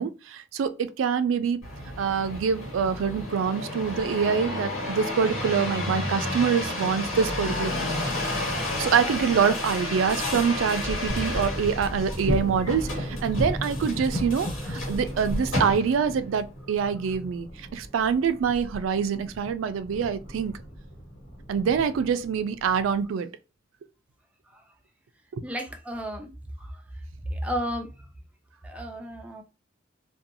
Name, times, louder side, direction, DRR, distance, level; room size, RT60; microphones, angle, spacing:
voice 1, 0.0-1.6 2.0-8.0 8.8-20.5 21.5-23.3 25.3-25.4, right 6 dB, 80° right, 0.3 m, -25 dB
sound 1, 1.6-16.2 16.8-17.3, left 1 dB, 80° left, 1.2 m, -31 dB
sound 2, 11.1-23.1, equal, 55° left, 1.0 m, -36 dB
voice 2, 25.4-26.3 27.3-27.9 28.6-29.4, equal, 5° right, 0.4 m, -32 dB
2.7 x 2.2 x 2.6 m
head